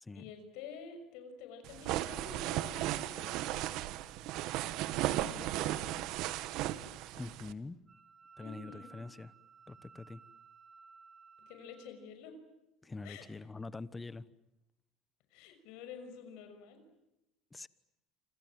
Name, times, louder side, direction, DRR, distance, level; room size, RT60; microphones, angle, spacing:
voice 1, 0.1-3.5 5.1-5.8 8.4-8.9 11.5-12.4 13.0-13.2 15.3-16.8, left 6 dB, 75° left, 8 dB, 6.0 m, -49 dB
sound 1, 1.6-7.5, right 14 dB, 65° right, 1.5 m, -36 dB
voice 2, 7.2-7.8 8.4-9.3 9.7-10.2 12.8-14.2 17.5-17.7, left 3 dB, 15° left, 17 dB, 1.1 m, -44 dB
Wind instrument woodwind instrument, 7.9-11.9, right 5 dB, 25° right, 2.8 m, -57 dB
29.0 x 26.5 x 7.6 m, 0.91 s
supercardioid pair, 120°, 0 cm